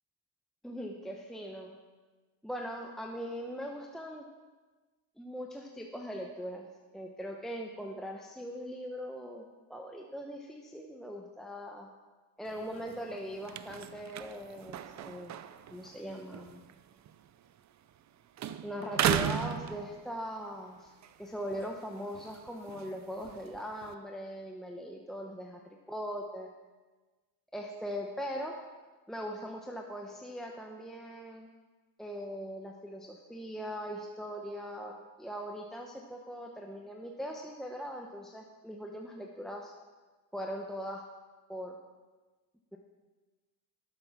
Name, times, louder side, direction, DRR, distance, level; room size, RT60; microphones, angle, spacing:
voice 1, 0.6-1.8 2.4-4.3 5.2-11.9 12.4-15.4 15.7-16.6 18.6-20.9 21.2-25.6 25.9-26.5 27.5-28.5 29.1-31.5 32.0-34.9 35.2-39.7 40.3-41.0 41.5-41.8 42.7-42.8, equal, ahead, 1 dB, 0.9 m, -40 dB
sound 1, 12.5-18.1 18.4-20.4 20.9-23.9, right 10 dB, 40° right, 0.6 m, -37 dB
12.0 x 7.9 x 5.9 m, 1.3 s
cardioid pair, 110°, 45 cm